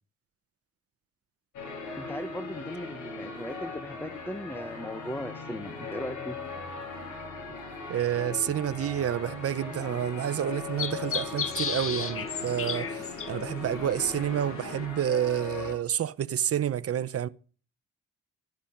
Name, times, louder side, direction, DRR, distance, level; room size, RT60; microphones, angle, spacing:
sound 1, 1.5-15.7, left 3 dB, 75° left, 6.6 m, -39 dB
voice 1, 2.0-6.4, left 1 dB, 5° left, 1.3 m, -37 dB
voice 2, 7.9-17.3, right 10 dB, 50° right, 0.9 m, -29 dB
sound 2, 8.1-14.9, left 7 dB, 45° left, 1.6 m, -37 dB
13.0 x 10.5 x 5.2 m
cardioid pair, 90°, 30 cm